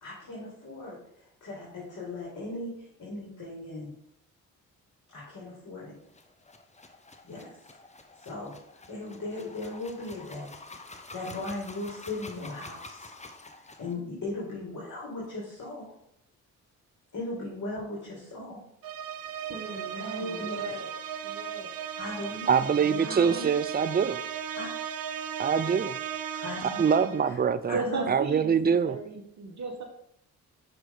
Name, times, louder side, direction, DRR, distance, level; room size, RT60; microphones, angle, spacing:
voice 1, 0.0-3.9 5.1-5.9 7.2-7.6 8.2-10.5 11.1-13.1 13.5-15.9 17.1-18.6 20.0-20.8 22.0-22.7 23.0-23.5 24.5-24.7 26.3-26.9 27.2-27.4 27.7-28.1, left 2 dB, 50° left, -6 dB, 2.5 m, -38 dB
sound 1, 6.1-13.9, left 3 dB, 20° left, 0.8 m, -48 dB
sound 2, 18.8-27.3, right 8 dB, 65° right, 0.7 m, -36 dB
voice 2, 19.5-20.9 21.2-21.7 22.7-23.5 27.7-29.8, right 4 dB, 45° right, 3 dB, 1.3 m, -36 dB
voice 3, 22.5-24.2 25.4-26.0 26.8-27.8 28.1-29.0, right 6 dB, 25° right, 14 dB, 0.5 m, -24 dB
5.9 x 5.0 x 3.8 m, 0.73 s
hypercardioid pair, 45°, 38 cm